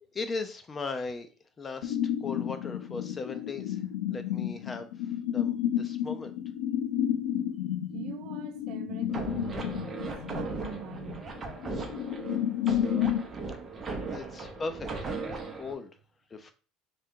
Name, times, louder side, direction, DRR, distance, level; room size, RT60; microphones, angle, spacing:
voice 1, 0.1-1.3 1.6-3.8 4.1-4.9 5.3-6.3 14.1-14.9 15.6-15.9 16.3-16.5, left 3 dB, 20° left, 0.5 m, -37 dB
sound 1, 1.8-13.3, left 10 dB, 90° left, 0.5 m, -31 dB
voice 2, 7.9-11.3 13.9-14.4, right 9 dB, 55° right, 0.3 m, -43 dB
sound 2, 9.1-15.7, right 3 dB, 20° right, 0.7 m, -37 dB
3.7 x 2.3 x 3.6 m
cardioid pair, 145°, 0 cm